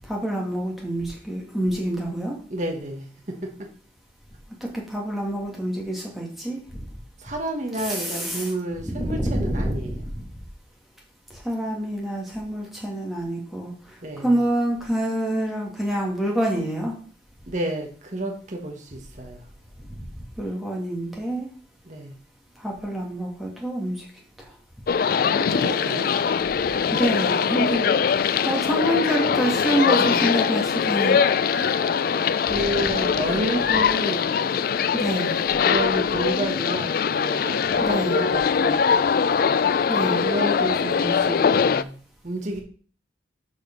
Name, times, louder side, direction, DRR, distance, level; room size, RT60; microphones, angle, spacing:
voice 1, 0.1-2.4 4.9-6.6 7.8-8.5 8.9-9.7 11.4-13.7 14.2-16.9 20.4-21.5 22.6-23.9 26.9-27.9 28.4-31.2 34.9-35.4 37.8-38.2 39.9-40.2, right 1 dB, ahead, 2.1 m, -26 dB
voice 2, 2.5-3.5 7.2-10.1 14.0-14.4 17.5-19.5 21.8-22.1 25.4-26.1 30.0-30.6 31.5-32.1 32.4-34.4 35.6-38.8 40.2-41.9 42.2-42.6, right 1 dB, 40° right, 1.2 m, -31 dB
sound 1, 24.9-41.8, left 6 dB, 50° left, 0.3 m, -22 dB
6.8 x 5.0 x 5.3 m
head